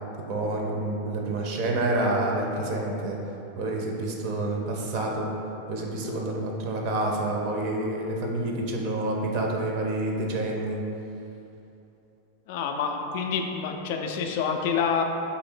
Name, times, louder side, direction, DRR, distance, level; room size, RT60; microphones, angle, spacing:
voice 1, 0.2-3.2 3.6-5.3 5.7-10.8, right 2 dB, 45° right, 0 dB, 0.5 m, -28 dB
voice 2, 12.5-15.0, left 6 dB, 50° left, 3 dB, 0.3 m, -27 dB
3.2 x 2.6 x 4.2 m, 2.8 s
figure-of-eight pair, 90°, 0 cm